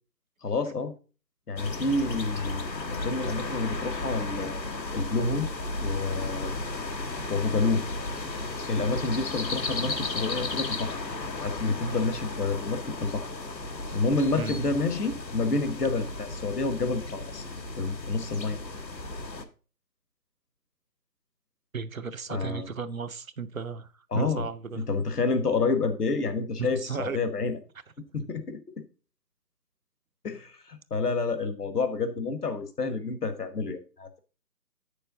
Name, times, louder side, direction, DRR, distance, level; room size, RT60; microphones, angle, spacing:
voice 1, 0.4-0.9 1.5-4.6 4.9-5.5 5.8-6.5 7.3-7.8 8.7-11.0 11.3-13.3 13.9-17.4 17.8-18.6 22.3-22.7 24.1-24.5 24.8-27.6 28.1-28.8 30.2-34.2, left 3 dB, 65° left, 1.4 m, -29 dB
sound 1, 1.6-19.4, left 2 dB, 85° left, 1.4 m, -34 dB
voice 2, 21.7-24.8 26.6-27.2, right 5 dB, 55° right, 0.7 m, -35 dB
7.7 x 6.8 x 3.8 m
figure-of-eight pair, 165°, 50 cm